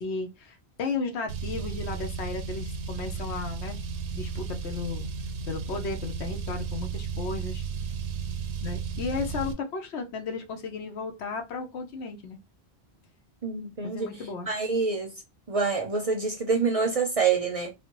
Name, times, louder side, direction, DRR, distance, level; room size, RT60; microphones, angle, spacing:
voice 1, 0.0-3.8 4.1-5.1 5.5-7.6 8.6-12.4 13.8-14.5, left 4 dB, 80° left, 1.0 m, -34 dB
Car, 1.3-9.5, right 6 dB, 90° right, 0.9 m, -34 dB
voice 2, 13.4-14.1 14.5-15.1 15.5-17.7, right 5 dB, 45° right, 0.5 m, -26 dB
3.2 x 2.1 x 2.9 m
omnidirectional pair, 1.1 m